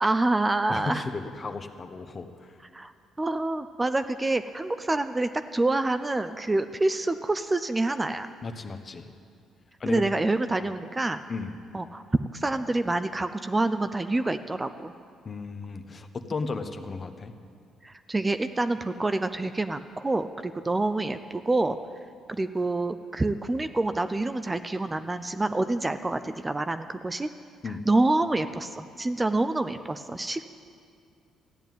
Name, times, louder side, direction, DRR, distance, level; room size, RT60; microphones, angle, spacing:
voice 1, 0.0-1.0 2.7-2.9 3.2-8.3 9.9-11.2 11.7-12.0 12.3-14.9 17.8-21.8 22.3-27.3 27.9-30.4, right 2 dB, 20° right, 10 dB, 0.5 m, -27 dB
voice 2, 0.7-2.5 8.4-9.1 9.8-10.3 10.6-10.7 11.3-11.5 15.2-17.3 27.6-27.8, left 4 dB, 35° left, 7 dB, 1.1 m, -35 dB
14.0 x 8.9 x 9.3 m, 2.3 s
cardioid pair, 90°, 0 cm